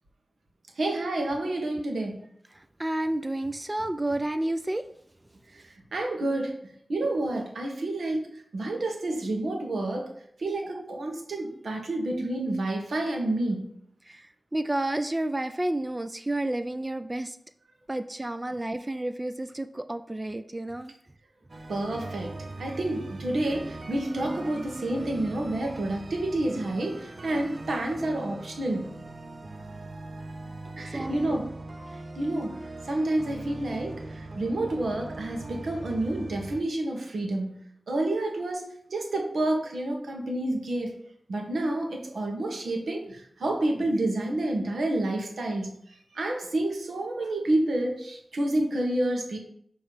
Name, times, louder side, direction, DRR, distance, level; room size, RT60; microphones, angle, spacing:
voice 1, 0.8-2.2 5.5-6.5 6.9-10.1 10.4-13.7 21.7-28.9 30.8-31.5 32.2-32.6 32.9-37.6 37.9-40.9 41.3-45.7 46.1-49.4, right 1 dB, 90° right, 2 dB, 1.2 m, -29 dB
voice 2, 2.5-4.9 14.0-17.4 17.9-20.9 30.8-31.5, right 1 dB, 20° right, 9 dB, 0.3 m, -31 dB
sound 1, 21.5-36.6, right 2 dB, 45° right, 0.7 m, -41 dB
7.0 x 3.1 x 4.9 m, 0.67 s
wide cardioid pair, 90°, 0 cm